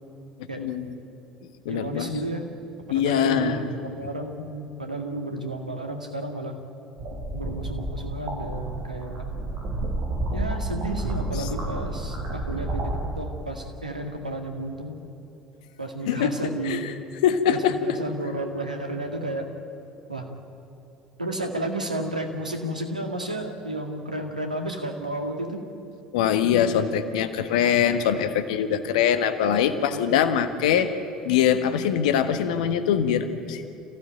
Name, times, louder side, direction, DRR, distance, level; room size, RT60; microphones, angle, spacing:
voice 1, 0.6-0.9 1.6-2.2 2.9-3.6 11.4-11.5 16.1-16.3 16.6-16.9 17.2-17.8 26.1-30.9 31.2-33.6, left 9 dB, 70° left, 10 dB, 1.4 m, -23 dB
voice 2, 1.7-2.5 2.9-6.5 7.3-9.3 10.3-15.1 15.8-16.9 17.5-19.5 20.1-20.3 21.2-25.7 29.6-30.2, right 1 dB, 90° right, 3 dB, 2.0 m, -32 dB
sound 1, 7.0-13.1, right 1 dB, 55° right, 7.5 m, -30 dB
27.0 x 16.0 x 9.1 m, 2.8 s
figure-of-eight pair, 60°, 4 cm